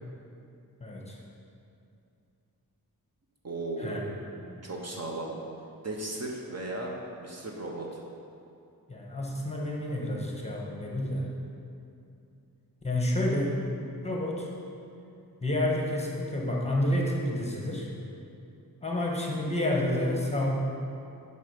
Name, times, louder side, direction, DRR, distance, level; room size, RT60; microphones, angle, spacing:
voice 1, 0.8-1.2 3.8-4.0 4.4-4.6 8.9-11.3 12.8-13.5 14.0-14.5 15.4-17.9 18.8-20.5, left 1 dB, 20° left, -2 dB, 1.2 m, -29 dB
voice 2, 3.4-4.2 4.6-5.4 5.8-8.0, right 2 dB, 45° right, -1 dB, 1.0 m, -36 dB
7.3 x 5.5 x 5.2 m, 2.6 s
wide cardioid pair, 95°, 36 cm